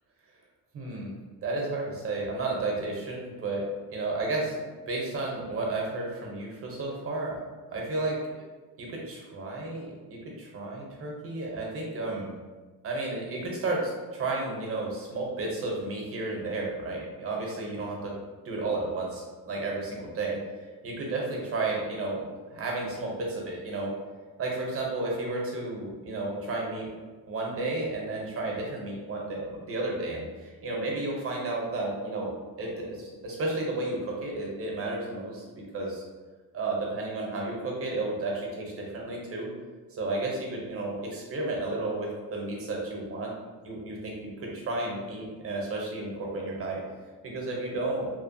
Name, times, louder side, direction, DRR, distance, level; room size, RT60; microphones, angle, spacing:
voice 1, 0.7-1.1 1.4-3.6 3.9-7.4 7.7-8.4 8.8-12.3 12.8-18.1 18.4-20.4 20.8-23.9 24.4-26.9 27.3-35.4 35.7-36.0 36.5-39.5 39.9-43.3 43.6-46.8 47.2-48.1, right 2 dB, 40° right, -2 dB, 0.7 m, -32 dB
2.9 x 2.2 x 2.5 m, 1.3 s
cardioid pair, 130°, 36 cm